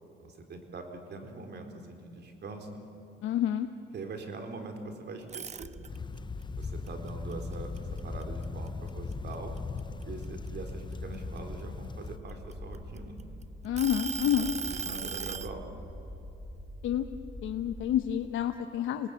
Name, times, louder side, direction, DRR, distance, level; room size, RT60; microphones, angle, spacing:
voice 1, 0.2-2.8 3.9-5.7 6.5-9.5 10.0-13.2 14.4-15.6, right 3 dB, 60° right, 5 dB, 4.1 m, -43 dB
voice 2, 3.2-3.7 13.6-14.5 16.8-17.1 17.4-19.1, left 10 dB, 85° left, 6 dB, 1.0 m, -28 dB
sound 1, 5.2-6.2 6.6-8.4 8.9-9.1 9.6-11.4 12.1-13.2 13.8-15.5, right 6 dB, 35° right, 0.8 m, -37 dB
sound 2, 5.6-17.8, equal, 15° right, 7.4 m, -45 dB
sound 3, 5.9-12.2, left 4 dB, 25° left, 0.7 m, -39 dB
27.5 x 19.5 x 9.7 m, 2.9 s
cardioid pair, 90°, 20 cm